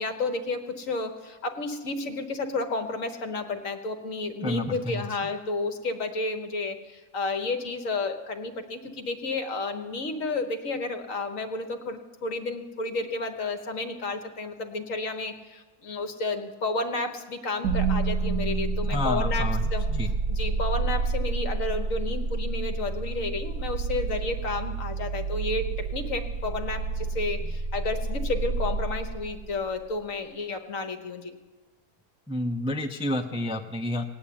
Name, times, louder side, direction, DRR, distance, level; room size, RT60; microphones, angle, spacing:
voice 1, 0.0-19.9 20.3-31.4, left 3 dB, 60° left, 6 dB, 1.6 m, -31 dB
voice 2, 4.4-5.0 18.9-20.1 27.4-27.6 32.3-34.0, left 1 dB, 5° right, 4 dB, 0.4 m, -30 dB
sound 1, 17.6-29.7, right 3 dB, 65° right, 1.2 m, -29 dB
18.5 x 8.7 x 8.7 m, 1.2 s
omnidirectional pair, 1.6 m